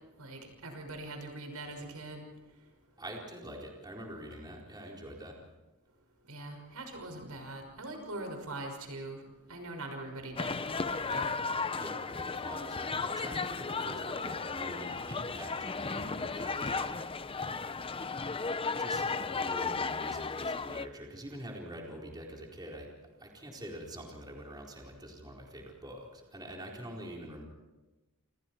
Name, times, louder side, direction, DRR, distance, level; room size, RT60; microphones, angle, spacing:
voice 1, 0.2-2.3 6.3-9.2 9.5-11.3, right 2 dB, 85° right, 4 dB, 6.0 m, -42 dB
voice 2, 3.0-5.4 11.8-17.0 18.8-22.9 23.2-27.4, equal, 20° right, -1 dB, 4.4 m, -45 dB
sound 1, 10.4-20.9, left 4 dB, 25° left, 0.7 m, -35 dB
28.5 x 28.0 x 4.6 m, 1.1 s
head